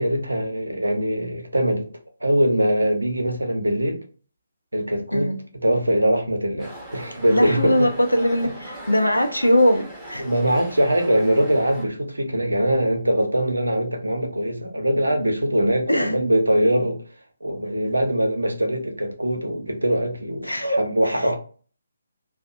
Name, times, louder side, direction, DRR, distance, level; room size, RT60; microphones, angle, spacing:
voice 1, 0.0-1.9 2.2-4.0 4.7-7.9 10.2-17.0 17.4-21.4, right 1 dB, 75° right, 0.6 m, -22 dB
sound 1, 6.6-11.9, right 1 dB, 5° right, 0.8 m, -39 dB
voice 2, 7.3-10.2 15.9-16.2 20.4-21.2, equal, 85° left, 0.5 m, -21 dB
2.6 x 2.0 x 2.4 m
figure-of-eight pair, 140°, 0 cm